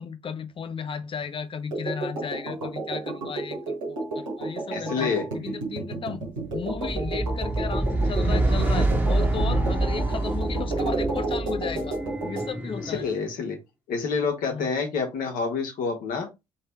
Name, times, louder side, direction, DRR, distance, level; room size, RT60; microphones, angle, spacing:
voice 1, 0.0-6.2 6.5-12.0 12.2-13.1 14.5-14.7, left 6 dB, 30° left, 0.6 m, -35 dB
sound 1, 1.7-12.5, right 2 dB, 80° right, 1.4 m, -32 dB
voice 2, 4.7-5.2 12.9-13.6 13.9-16.3, left 5 dB, 55° left, 1.3 m, -27 dB
sound 2, 6.6-13.1, right 2 dB, 15° right, 1.3 m, -26 dB
3.3 x 3.2 x 4.4 m
figure-of-eight pair, 45°, 16 cm